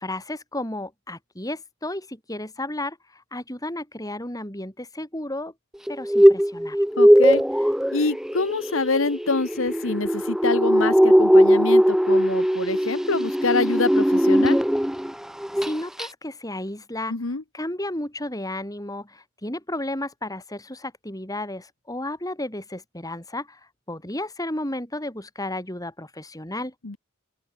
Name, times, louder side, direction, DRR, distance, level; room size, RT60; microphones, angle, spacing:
voice 1, 0.0-5.5 5.9-6.8 15.6-17.2 17.5-23.6 23.9-26.7, left 1 dB, 15° left, 6.5 m, -33 dB
sound 1, 5.9-15.1 15.4-15.7 16.0-16.1, equal, ahead, 0.7 m, -19 dB
voice 2, 7.0-7.4 7.9-14.6 17.1-17.4 26.8-27.0, left 3 dB, 65° left, 1.2 m, -26 dB
open air
head